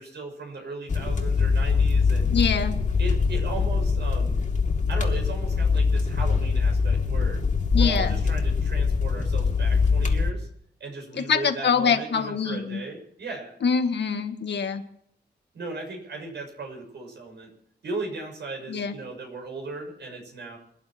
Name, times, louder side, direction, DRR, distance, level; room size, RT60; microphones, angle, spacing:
voice 1, 0.0-2.3 3.0-4.4 4.9-7.4 7.7-10.5 10.8-13.6 15.5-17.5 17.8-20.6, right 3 dB, 80° right, 2 dB, 6.5 m, -37 dB
sound 1, 0.9-10.3, left 5 dB, 45° left, 2.5 m, -23 dB
voice 2, 2.3-2.8 7.7-8.2 11.2-12.8 13.6-14.8 18.7-19.0, left 6 dB, 85° left, 6 dB, 1.8 m, -24 dB
27.0 x 11.0 x 4.5 m, 0.70 s
wide cardioid pair, 115°, 18 cm